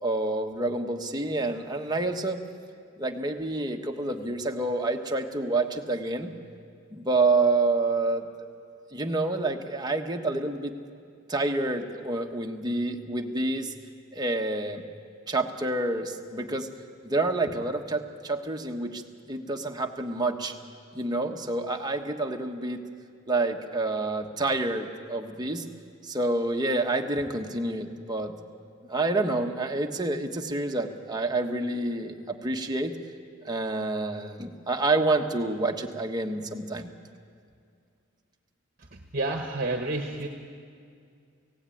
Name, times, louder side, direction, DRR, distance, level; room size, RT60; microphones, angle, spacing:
voice 1, 0.0-2.4 3.0-6.3 6.9-8.3 8.9-10.8 11.3-13.7 14.1-14.8 15.3-16.7 17.0-19.0 19.3-20.5 20.9-22.8 23.3-25.7 26.0-28.3 28.8-32.9 33.4-36.9, right 2 dB, 20° right, 3 dB, 1.3 m, -28 dB
voice 2, 38.8-40.3, right 2 dB, 45° right, 3 dB, 1.3 m, -30 dB
24.5 x 17.0 x 9.2 m, 2.3 s
head